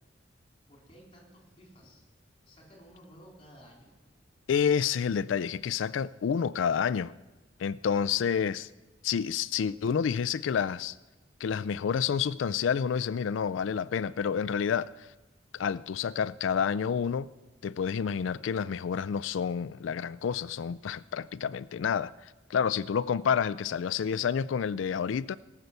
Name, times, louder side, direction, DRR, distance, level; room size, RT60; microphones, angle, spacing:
voice 1, 0.7-2.0 2.4-3.9, equal, 30° left, 3.7 m, -54 dB
voice 2, 4.5-7.1 7.6-8.7 9.0-11.0 11.4-15.1 15.5-17.3 17.6-22.1 22.5-25.4, left 7 dB, 80° left, 0.4 m, -29 dB
18.5 x 6.8 x 8.0 m
head